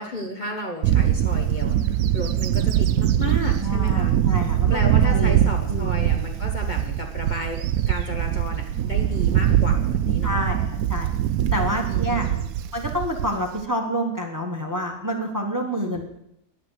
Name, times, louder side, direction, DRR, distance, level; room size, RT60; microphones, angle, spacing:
voice 1, 0.0-4.1 4.7-10.4 11.6-12.5 15.7-16.1, left 1 dB, 35° left, 2 dB, 1.2 m, -33 dB
Bird / Wind, 0.8-13.6, right 10 dB, 80° right, 1.0 m, -22 dB
voice 2, 3.6-5.3 5.7-5.9 10.2-11.1 11.5-12.3 12.7-16.1, equal, 15° right, 2 dB, 1.2 m, -28 dB
9.9 x 8.8 x 6.5 m, 0.80 s
omnidirectional pair, 1.5 m